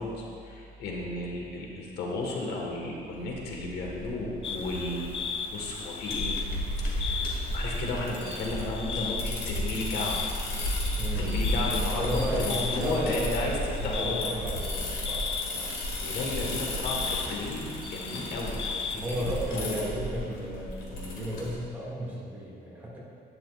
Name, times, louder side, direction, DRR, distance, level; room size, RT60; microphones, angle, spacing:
voice 1, 0.0-5.1 5.4-6.4 6.8-10.2 11.2-14.4 16.0-19.0 19.5-19.8, left 2 dB, 85° left, -1 dB, 1.6 m, -34 dB
sound 1, 3.2-21.5, left 1 dB, 65° left, 2.1 m, -33 dB
sound 2, 4.4-19.0, left 6 dB, 35° left, 0.4 m, -37 dB
voice 2, 11.0-11.4 11.9-15.7 18.9-23.0, equal, 10° right, -7 dB, 2.1 m, -34 dB
11.5 x 9.3 x 2.4 m, 2.5 s
cardioid pair, 170°, 16 cm